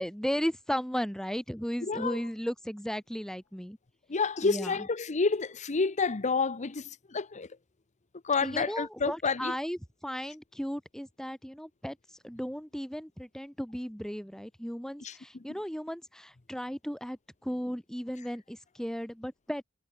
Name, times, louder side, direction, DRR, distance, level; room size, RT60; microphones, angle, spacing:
voice 1, 0.0-3.8 4.4-4.7 8.4-12.0 12.2-19.6, equal, 5° left, 2.1 m, -35 dB
voice 2, 1.8-2.2 4.1-7.5 8.2-9.5 15.0-15.2, left 4 dB, 35° left, 0.8 m, -29 dB
head